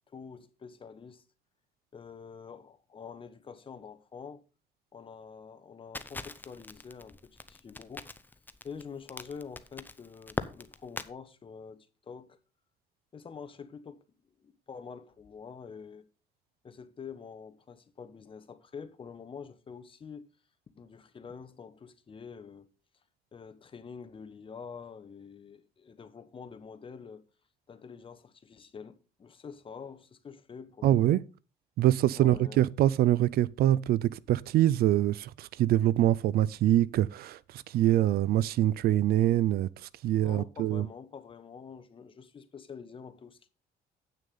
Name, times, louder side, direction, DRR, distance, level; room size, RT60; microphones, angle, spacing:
voice 1, 0.1-1.2 1.9-4.4 4.9-8.1 8.6-12.4 13.1-14.0 14.4-16.0 16.6-20.3 20.8-22.7 23.3-27.2 27.7-31.2 32.1-32.6 40.2-43.5, left 6 dB, 30° left, 1.1 m, -46 dB
Crackle, 5.9-11.1, left 2 dB, 10° left, 0.6 m, -41 dB
voice 2, 30.8-31.2 31.8-40.9, right 13 dB, 65° right, 0.4 m, -25 dB
8.5 x 6.4 x 5.5 m
cardioid pair, 110°, 17 cm